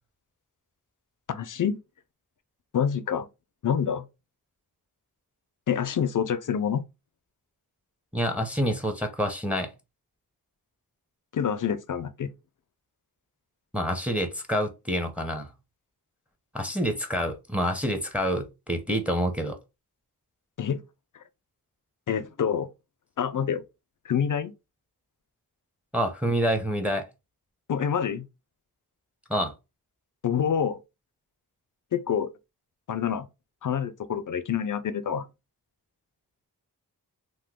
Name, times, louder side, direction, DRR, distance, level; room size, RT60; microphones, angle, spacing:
voice 1, 1.3-1.8 2.7-3.3 3.6-4.1 5.7-6.8 11.3-12.3 20.6-20.8 22.1-22.7 23.2-23.6 24.0-24.5 27.7-28.3 30.2-30.8 31.9-32.3 32.9-33.3 33.6-35.3, left 8 dB, 55° left, 0.5 m, -27 dB
voice 2, 8.1-9.7 13.7-15.5 16.5-19.6 25.9-27.1 29.3-29.5, equal, 5° right, 0.7 m, -27 dB
2.9 x 2.1 x 3.5 m
wide cardioid pair, 65°, 39 cm